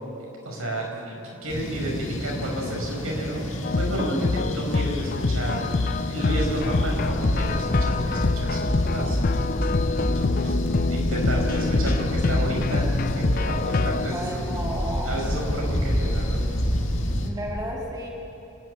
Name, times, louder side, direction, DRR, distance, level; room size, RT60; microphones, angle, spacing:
voice 1, 0.4-5.7 6.0-9.2 10.2-10.6 10.9-14.5 15.0-16.4, right 1 dB, 75° right, -1 dB, 6.2 m, -31 dB
sound 1, 1.5-17.3, left 1 dB, 60° left, 2.2 m, -30 dB
sound 2, 3.6-14.1, left 3 dB, 40° left, 0.5 m, -26 dB
voice 2, 4.0-4.4 14.1-15.2 17.2-18.1, right 1 dB, 15° right, -3 dB, 2.1 m, -32 dB
sound 3, 6.3-13.7, equal, 15° left, 1.2 m, -29 dB
29.5 x 11.0 x 9.7 m, 2.8 s
head